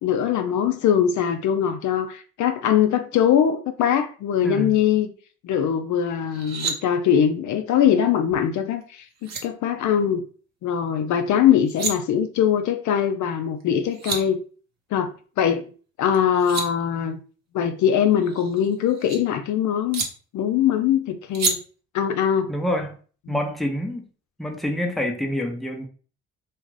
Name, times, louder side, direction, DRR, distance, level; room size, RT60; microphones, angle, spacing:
voice 1, 0.0-5.1 5.4-10.2 10.6-14.4 14.9-15.7 16.0-17.2 17.5-20.1 20.3-21.6 21.9-22.5 23.3-23.4, left 9 dB, 60° left, 0.4 m, -22 dB
voice 2, 4.4-4.7 22.5-22.9 23.3-24.0 24.4-25.9, equal, ahead, 0.6 m, -27 dB
sound 1, 6.3-6.8 8.8-8.9 9.2-9.4 11.5-11.9 13.6-13.7 13.9-14.2 16.1-16.7 18.2-19.2 19.9-20.1 21.3-21.5, right 4 dB, 50° right, 0.8 m, -28 dB
2.4 x 2.4 x 3.1 m
supercardioid pair, 55°, 34 cm